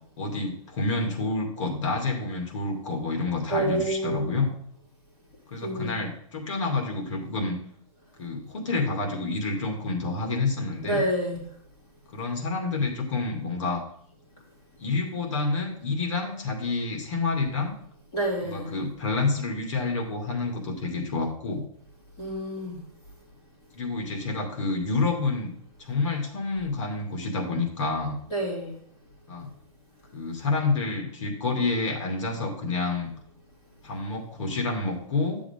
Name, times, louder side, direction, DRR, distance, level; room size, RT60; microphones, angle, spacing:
voice 1, 0.2-4.6 5.5-7.6 8.2-11.0 12.1-13.8 14.8-17.7 18.4-21.7 23.7-25.5 25.8-28.2 29.3-29.5 30.1-33.1 33.8-35.4, left 3 dB, 55° left, 2 dB, 2.3 m, -28 dB
voice 2, 3.5-4.4 5.6-6.0 10.8-11.4 18.1-18.7 22.2-22.8 28.3-28.7, right 1 dB, 20° left, -5 dB, 3.3 m, -28 dB
11.0 x 7.0 x 3.7 m, 0.64 s
hypercardioid pair, 170°, 19 cm